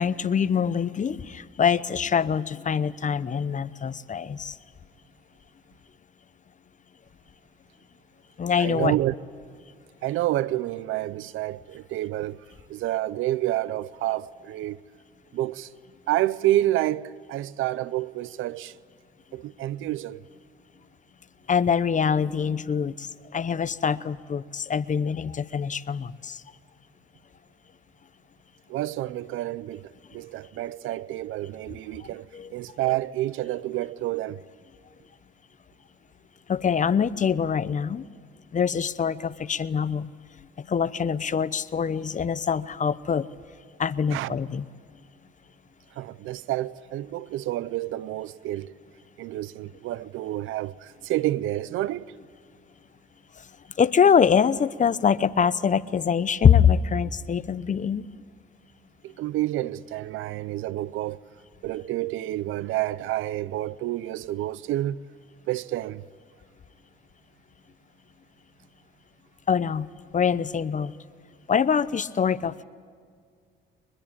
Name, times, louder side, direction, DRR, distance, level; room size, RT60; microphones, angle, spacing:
voice 1, 0.0-4.5 8.4-8.9 21.5-26.4 32.3-32.5 36.5-38.0 38.5-40.1 40.6-43.2 43.8-44.6 53.8-58.1 69.5-69.9 70.1-70.9 71.5-72.6, left 7 dB, 40° left, 0.9 m, -24 dB
voice 2, 8.6-9.1 10.0-12.4 12.7-14.8 15.3-15.7 16.1-18.7 19.3-20.2 28.7-32.3 32.5-34.4 44.1-44.4 46.0-48.8 49.2-52.1 59.0-61.2 61.6-65.0 65.5-66.0, right 15 dB, 90° right, 0.7 m, -29 dB
23.5 x 21.5 x 8.8 m
cardioid pair, 90°, 20 cm